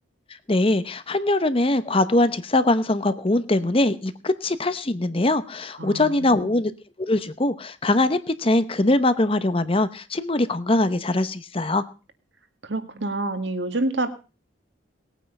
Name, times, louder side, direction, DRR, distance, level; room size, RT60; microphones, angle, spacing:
voice 1, 0.5-6.7 7.0-11.8, left 2 dB, 30° left, 13 dB, 0.8 m, -22 dB
voice 2, 5.8-6.6 12.6-14.1, right 2 dB, 65° right, 8 dB, 1.9 m, -28 dB
19.0 x 9.2 x 5.4 m, 0.34 s
head